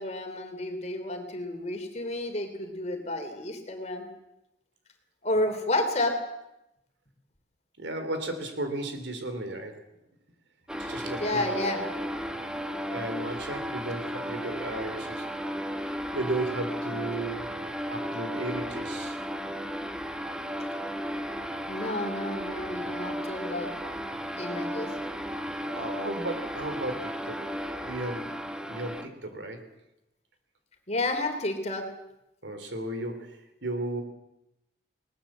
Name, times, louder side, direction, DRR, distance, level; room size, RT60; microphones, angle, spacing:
voice 1, 0.0-4.1 5.2-6.1 11.2-11.9 21.7-23.7 24.4-24.9 30.9-31.8, left 1 dB, 35° left, 5 dB, 3.2 m, -31 dB
voice 2, 7.8-9.8 10.8-11.8 12.9-15.3 15.7-17.6 17.9-19.2 25.7-27.4 27.8-28.4 28.7-29.6 32.4-34.0, right 2 dB, 75° right, 7 dB, 3.5 m, -35 dB
sound 1, 10.7-29.1, equal, 5° right, 1.2 m, -34 dB
21.0 x 19.5 x 7.5 m, 0.89 s
head